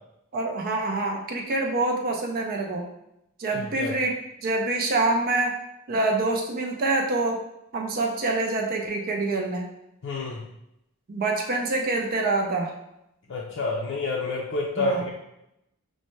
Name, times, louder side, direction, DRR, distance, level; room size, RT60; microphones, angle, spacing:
voice 1, 0.3-2.8 3.4-5.5 5.9-7.4 7.7-9.7 11.1-12.7 14.8-15.0, right 2 dB, 45° right, 1 dB, 0.4 m, -26 dB
voice 2, 3.6-3.9 10.0-10.5 13.3-15.1, left 2 dB, 60° left, -3 dB, 0.4 m, -28 dB
5.3 x 2.1 x 3.1 m, 0.85 s
head